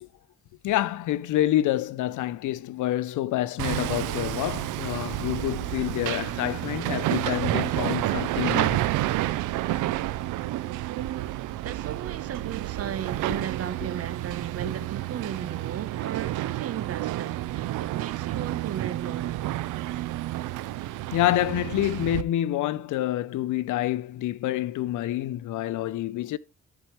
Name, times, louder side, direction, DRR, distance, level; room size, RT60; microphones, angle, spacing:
voice 1, 0.6-8.8 21.1-26.4, left 14 dB, 80° left, 0.6 m, -27 dB
Hammer, 3.6-22.2, right 15 dB, 85° right, 0.6 m, -30 dB
voice 2, 11.6-19.4 19.9-20.0, right 9 dB, 50° right, 0.9 m, -36 dB
13.0 x 4.7 x 3.1 m
cardioid pair, 90°, 30 cm